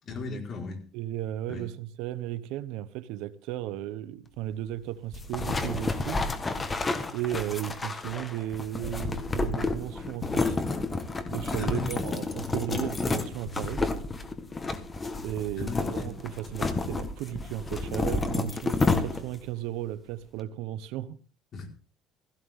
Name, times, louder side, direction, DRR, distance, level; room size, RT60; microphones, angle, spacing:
voice 1, 0.0-0.8 1.5-1.7 11.6-12.1 15.6-16.2 21.5-21.7, left 3 dB, 40° left, 4.6 m, -36 dB
voice 2, 0.9-6.2 7.1-10.6 11.3-13.8 15.2-21.2, right 13 dB, 85° right, 1.0 m, -35 dB
sound 1, 5.1-19.5, left 3 dB, 20° left, 1.5 m, -30 dB
16.0 x 16.0 x 3.7 m
cardioid pair, 150°, 0 cm